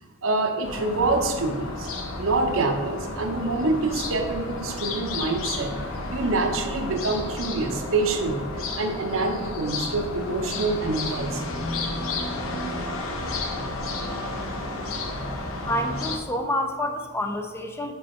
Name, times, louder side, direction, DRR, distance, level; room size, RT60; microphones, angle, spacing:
voice 1, 0.2-1.9 2.2-11.5, right 3 dB, 75° right, 4 dB, 0.7 m, -26 dB
sound 1, 0.6-16.2, left 2 dB, 85° left, 0.8 m, -32 dB
voice 2, 15.6-17.9, left 1 dB, 10° left, 5 dB, 0.4 m, -28 dB
5.5 x 4.5 x 4.2 m, 1.4 s
head